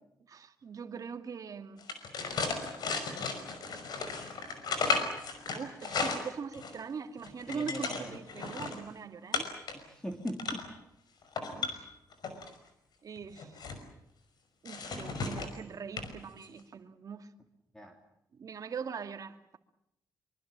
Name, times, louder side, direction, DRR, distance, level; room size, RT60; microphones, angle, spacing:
voice 1, 0.3-1.9 5.5-9.5 11.5-11.9 13.0-13.5 14.6-17.3 18.3-19.6, right 6 dB, 50° right, 2.3 m, -42 dB
sound 1, 1.8-6.8 7.2-8.8 9.3-9.7 10.1-10.7 11.2-12.5 13.2-13.8 14.7-15.6 16.0-16.1 16.4-16.6, left 4 dB, 70° left, 5.5 m, -35 dB
voice 2, 7.5-8.2 9.7-10.7 17.7-17.9, equal, 10° left, 3.4 m, -40 dB
24.5 x 24.5 x 7.5 m
cardioid pair, 95°, 7 cm